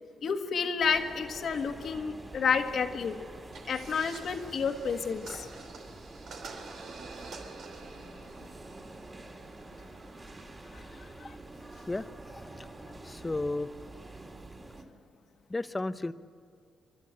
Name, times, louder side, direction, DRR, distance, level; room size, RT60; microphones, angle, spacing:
voice 1, 0.2-3.2 3.7-5.5 11.2-11.3, left 6 dB, 60° left, 6 dB, 1.6 m, -30 dB
sound 1, 0.8-14.8, right 2 dB, 25° right, 3.0 m, -47 dB
sound 2, 3.5-10.6, right 4 dB, 75° right, 2.8 m, -48 dB
voice 2, 11.9-12.7 13.0-13.7 15.5-16.1, left 2 dB, 20° left, 12 dB, 0.8 m, -34 dB
30.0 x 12.5 x 8.9 m, 2.4 s
cardioid pair, 80°, 0 cm